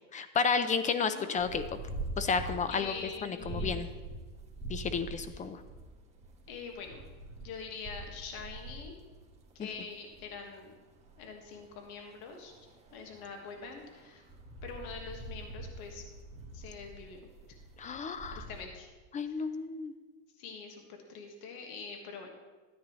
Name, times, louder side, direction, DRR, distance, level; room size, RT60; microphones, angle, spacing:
voice 1, 0.1-1.6 2.2-2.9 3.2-3.9 4.7-5.6 9.6-9.7 17.8-18.4 19.1-19.9, left 5 dB, 20° left, 11 dB, 0.5 m, -32 dB
voice 2, 1.1-1.7 2.7-3.9 5.3-5.4 6.5-7.0 7.4-8.9 9.5-10.7 11.2-12.5 12.9-14.2 14.6-16.0 16.5-17.2 18.3-18.9 19.2-19.5 20.4-22.3, left 5 dB, 70° left, 3 dB, 1.7 m, -44 dB
sound 1, 1.4-18.6, right 2 dB, 15° right, 1.5 m, -44 dB
13.5 x 9.5 x 3.1 m, 1.3 s
supercardioid pair, 125°, 45 cm